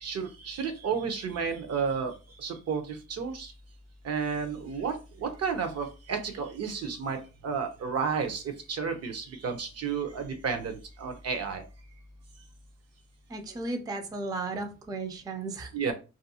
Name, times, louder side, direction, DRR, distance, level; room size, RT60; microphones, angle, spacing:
voice 1, 0.0-3.5 4.0-11.6 15.7-15.9, right 6 dB, 55° right, 7 dB, 0.7 m, -32 dB
voice 2, 13.3-15.9, right 3 dB, 15° right, 5 dB, 0.4 m, -35 dB
2.5 x 2.3 x 2.7 m, 0.31 s
cardioid pair, 90°, 30 cm